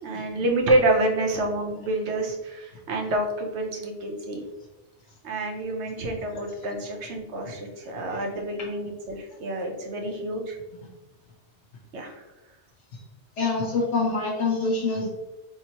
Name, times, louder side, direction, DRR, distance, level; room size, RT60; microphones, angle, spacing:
voice 1, 0.0-4.4 5.2-10.6 11.9-12.2, right 1 dB, 75° right, 2 dB, 1.1 m, -27 dB
voice 2, 13.4-15.1, left 3 dB, 90° left, -2 dB, 1.1 m, -25 dB
4.4 x 3.6 x 2.9 m, 1.1 s
omnidirectional pair, 1.2 m